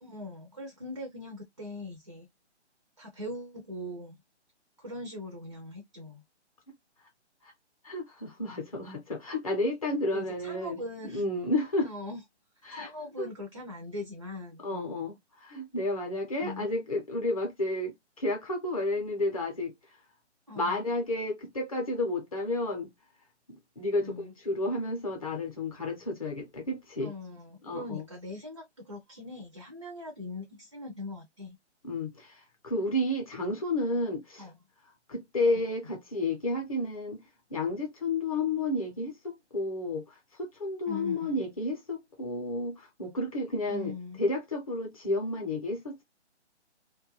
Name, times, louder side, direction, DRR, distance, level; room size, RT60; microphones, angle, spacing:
voice 1, 0.0-2.3 3.0-4.2 4.8-6.2 10.1-11.3 11.8-12.2 12.7-15.0 16.4-16.7 20.5-20.8 24.0-24.3 27.0-31.6 34.4-34.6 35.5-36.0 40.9-41.4 43.7-44.2, left 2 dB, 30° right, 0.4 m, -41 dB
voice 2, 7.8-10.8 11.1-11.9 12.6-12.9 13.2-13.3 14.6-19.7 20.6-22.9 23.5-27.1 27.6-28.1 31.8-34.4 35.1-37.2 37.5-43.9 44.2-46.0, left 2 dB, 30° left, 0.6 m, -31 dB
2.2 x 2.2 x 2.9 m
figure-of-eight pair, 150°, 35 cm